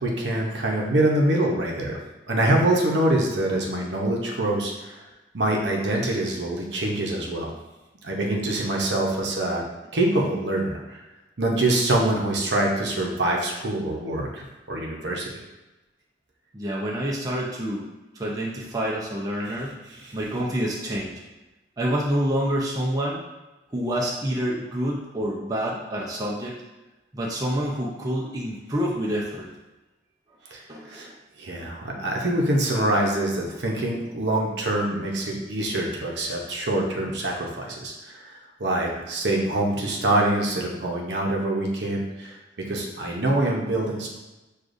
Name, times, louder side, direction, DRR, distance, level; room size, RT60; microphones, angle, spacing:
voice 1, 0.0-2.0 2.3-5.0 5.3-7.5 8.0-9.6 9.9-11.0 11.4-15.3 19.4-19.5 19.9-20.2 30.5-31.1 31.4-44.1, right 1 dB, 75° right, -1 dB, 0.7 m, -25 dB
voice 2, 16.5-17.9 18.1-19.7 20.1-21.2 21.8-23.2 23.7-26.6 27.1-29.5 30.7-31.1, equal, 20° right, -4 dB, 0.5 m, -27 dB
6.4 x 2.4 x 2.6 m, 1.1 s
head